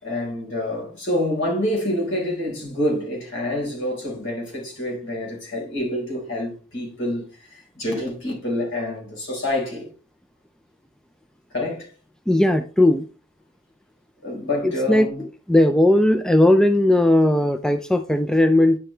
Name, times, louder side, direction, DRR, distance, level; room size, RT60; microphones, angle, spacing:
voice 1, 0.0-9.9 11.5-11.9 14.2-15.2, left 1 dB, 60° left, 4.5 m, -27 dB
voice 2, 12.3-13.1 14.6-15.1 15.5-18.8, left 1 dB, 5° left, 0.4 m, -17 dB
10.0 x 6.1 x 3.3 m
head